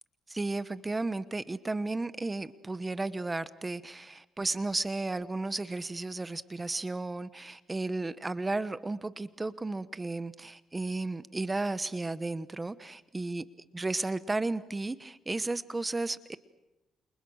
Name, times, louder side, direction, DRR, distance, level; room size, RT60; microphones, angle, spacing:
voice 1, 0.3-13.4 13.7-16.4, right 2 dB, 20° right, 15 dB, 1.1 m, -34 dB
29.5 x 27.5 x 6.5 m, 0.97 s
cardioid pair, 90°, 0 cm